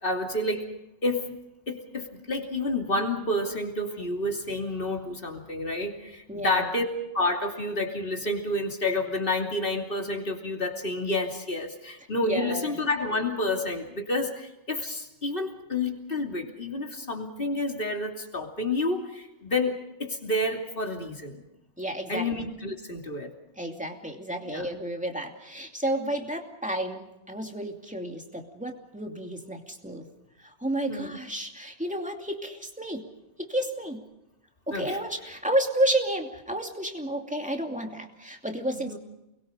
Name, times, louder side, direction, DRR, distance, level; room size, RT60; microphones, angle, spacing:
voice 1, 0.0-0.7 1.0-1.3 1.7-6.9 7.1-21.4 22.1-23.3 24.4-24.7 30.9-31.1 34.7-35.0 38.7-39.0, left 2 dB, 50° left, 2 dB, 3.0 m, -29 dB
voice 2, 6.3-6.7 12.2-12.8 21.8-22.3 23.6-30.1 30.4-33.1 33.4-34.0 34.7-39.0, right 1 dB, 5° right, 3 dB, 2.6 m, -31 dB
29.5 x 22.0 x 5.2 m, 0.90 s
omnidirectional pair, 1.2 m